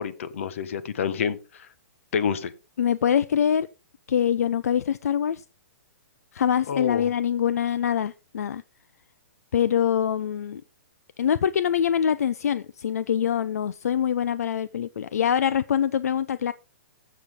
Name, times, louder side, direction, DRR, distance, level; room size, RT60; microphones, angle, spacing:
voice 1, 0.0-1.7 2.1-2.5 6.7-7.1, left 7 dB, 55° left, 1.3 m, -28 dB
voice 2, 2.8-3.7 4.1-5.4 6.3-8.6 9.5-10.6 11.2-16.5, left 9 dB, 75° left, 0.6 m, -24 dB
15.0 x 7.3 x 3.7 m
hypercardioid pair, 165°, 8 cm